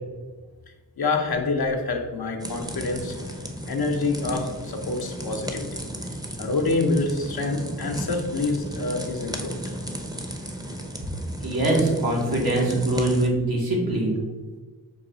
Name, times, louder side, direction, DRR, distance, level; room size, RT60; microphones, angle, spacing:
voice 1, 1.0-3.2 3.7-5.9 6.4-9.7, left 3 dB, 80° left, 3 dB, 0.7 m, -27 dB
sound 1, 2.4-13.3, equal, 10° right, 0.6 m, -35 dB
voice 2, 11.4-14.1, right 1 dB, 75° right, -3 dB, 1.4 m, -23 dB
5.4 x 2.3 x 3.9 m, 1.3 s
wide cardioid pair, 55°, 36 cm